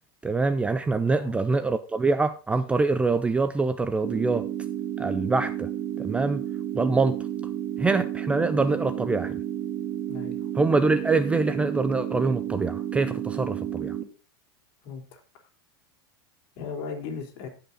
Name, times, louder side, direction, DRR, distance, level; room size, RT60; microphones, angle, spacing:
voice 1, 0.2-4.4 5.0-5.7 6.0-6.4 6.7-7.2 7.8-9.4 10.5-14.0, right 3 dB, 10° right, 0.5 m, -24 dB
sound 1, 4.0-14.0, right 11 dB, 40° right, 2.1 m, -32 dB
voice 2, 10.1-10.5 14.8-15.2 16.6-17.5, left 5 dB, 45° left, 3.6 m, -37 dB
16.0 x 5.8 x 3.9 m
supercardioid pair, 140°, 13 cm